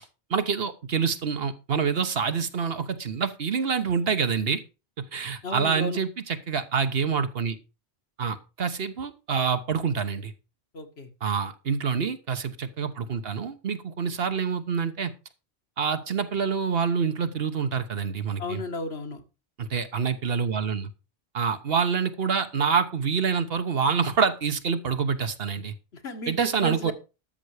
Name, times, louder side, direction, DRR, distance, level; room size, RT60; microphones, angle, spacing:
voice 1, 0.3-4.6 5.0-7.6 8.2-10.3 11.2-15.1 15.8-18.6 19.6-20.9 21.3-25.7 26.3-26.9, right 6 dB, 65° right, 10 dB, 1.3 m, -26 dB
voice 2, 5.4-6.0 10.7-11.1 18.4-19.2 25.9-26.9, left 2 dB, 70° left, 5 dB, 1.9 m, -34 dB
13.0 x 6.8 x 4.9 m, 0.31 s
omnidirectional pair, 1.1 m